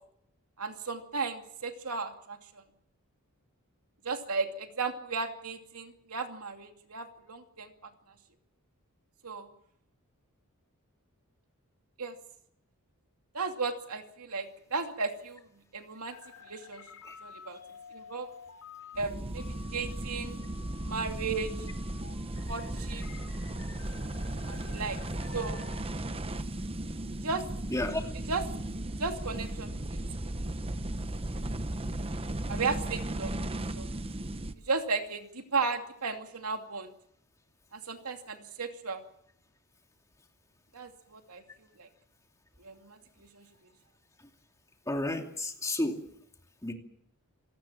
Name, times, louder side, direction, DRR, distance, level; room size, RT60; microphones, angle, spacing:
voice 1, 0.6-2.6 4.0-7.7 9.2-9.5 12.0-12.2 13.3-15.5 15.7-16.2 16.5-16.8 17.2-17.6 17.9-18.3 19.0-20.4 20.8-21.5 22.5-23.0 24.5-25.0 25.3-25.7 27.2-27.4 28.3-28.4 29.0-30.0 32.5-33.3 33.7-33.9 34.7-36.9 37.7-39.0 40.7-41.4 41.8-41.9 42.6-43.5, right 4 dB, 80° right, 2.6 m, -35 dB
sound 1, 16.1-25.8, left 6 dB, 90° left, 4.3 m, -51 dB
sound 2, 19.0-34.5, right 1 dB, 25° right, 1.0 m, -36 dB
voice 2, 27.7-28.0 44.9-46.0 46.6-46.7, left 1 dB, 15° left, 2.6 m, -31 dB
27.5 x 18.5 x 7.3 m
head